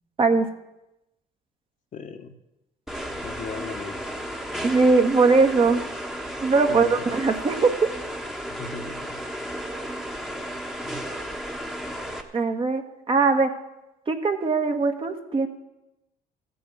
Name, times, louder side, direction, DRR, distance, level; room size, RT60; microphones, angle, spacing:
voice 1, 1.9-2.3 3.2-4.2 6.7-6.9 8.6-9.2, left 5 dB, 50° left, 6 dB, 1.2 m, -38 dB
sound 1, 2.9-12.2, equal, ahead, 1.3 m, -33 dB
voice 2, 4.6-5.8 6.4-7.9 12.3-12.8 13.1-13.5 14.1-15.5, right 4 dB, 30° right, 5 dB, 1.5 m, -20 dB
14.5 x 7.1 x 8.8 m, 0.93 s
cardioid pair, 110°, 17 cm